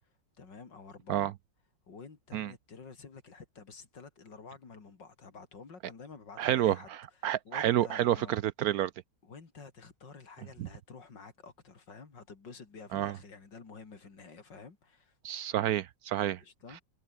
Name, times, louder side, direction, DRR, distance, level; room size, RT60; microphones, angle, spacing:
voice 1, 0.4-1.3 1.9-6.9 7.2-8.4 9.2-15.2 16.4-16.8, left 4 dB, 80° left, 3.8 m, -50 dB
voice 2, 6.4-7.0 7.2-8.9 10.6-10.7 12.9-13.1 15.2-16.4, right 12 dB, 70° right, 0.9 m, -29 dB
omnidirectional pair, 1.9 m